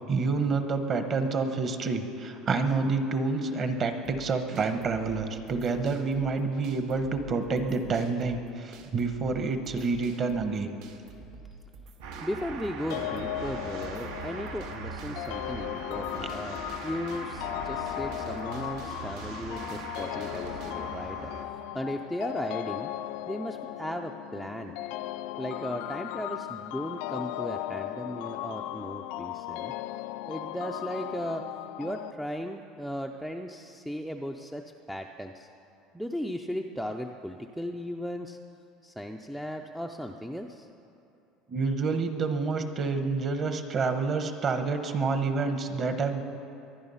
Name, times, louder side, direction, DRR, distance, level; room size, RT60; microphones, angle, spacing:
voice 1, 0.1-10.7 41.5-46.2, right 4 dB, 30° right, 7 dB, 1.0 m, -28 dB
sound 1, 4.0-20.7, right 4 dB, 65° right, 1.4 m, -49 dB
sound 2, 12.0-21.5, right 5 dB, 85° right, 1.6 m, -41 dB
voice 2, 12.2-16.6 16.8-21.3 21.7-22.9 23.3-24.8 25.4-29.7 30.3-31.4 31.8-35.5 35.9-38.4 38.8-40.7, equal, ahead, 3 dB, 0.4 m, -36 dB
sound 3, 12.9-32.1, left 14 dB, 65° left, 0.4 m, -37 dB
23.0 x 9.7 x 5.6 m, 2.7 s
cardioid pair, 165°, 0 cm